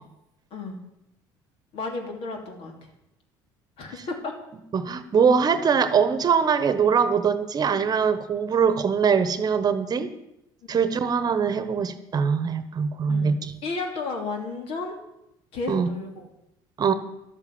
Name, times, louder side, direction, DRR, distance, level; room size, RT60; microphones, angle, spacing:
voice 1, 1.7-2.9 3.8-4.3 9.9-10.1 10.7-10.8 13.1-15.0 15.5-16.3, left 3 dB, 60° left, 4 dB, 2.9 m, -33 dB
voice 2, 4.7-10.1 10.7-13.5 15.7-15.9 16.8-16.9, right 6 dB, 40° right, 12 dB, 1.1 m, -22 dB
12.0 x 8.3 x 7.3 m, 0.86 s
supercardioid pair, 85°, 11 cm